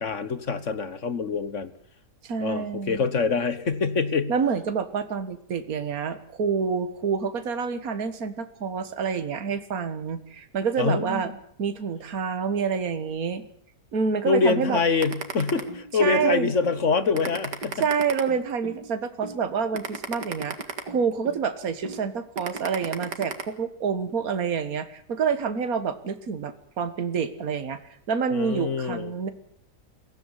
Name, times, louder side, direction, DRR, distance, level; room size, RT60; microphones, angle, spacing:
voice 1, 0.0-1.7 2.4-4.3 10.8-11.2 14.3-17.8 28.3-29.1, left 5 dB, 50° left, 14 dB, 1.6 m, -25 dB
voice 2, 2.2-3.0 4.3-11.3 11.6-13.4 13.9-14.8 16.0-16.5 17.8-20.6 20.9-27.8 28.1-29.3, right 6 dB, 60° right, 10 dB, 2.0 m, -27 dB
sound 1, 15.0-16.2 16.6-16.8 17.1-18.8 19.2-19.4 19.7-21.4 21.8-22.0 22.4-23.4, right 4 dB, 80° right, 2.8 m, -34 dB
22.5 x 16.5 x 9.9 m, 0.64 s
omnidirectional pair, 1.8 m